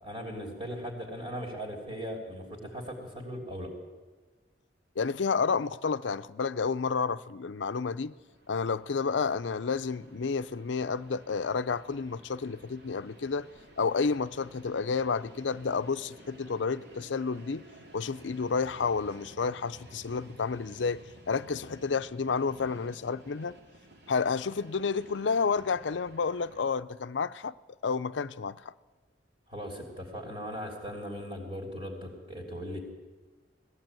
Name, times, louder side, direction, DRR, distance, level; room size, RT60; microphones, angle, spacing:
voice 1, 0.0-3.7 29.5-32.8, equal, 35° right, 3.3 m, -38 dB
voice 2, 5.0-8.1 8.5-13.5 13.8-17.6 17.9-23.6 24.1-27.5 27.8-28.6, left 5 dB, 75° left, 0.6 m, -30 dB
Train, 7.7-26.6, right 1 dB, 65° right, 2.2 m, -54 dB
20.0 x 15.0 x 9.0 m
head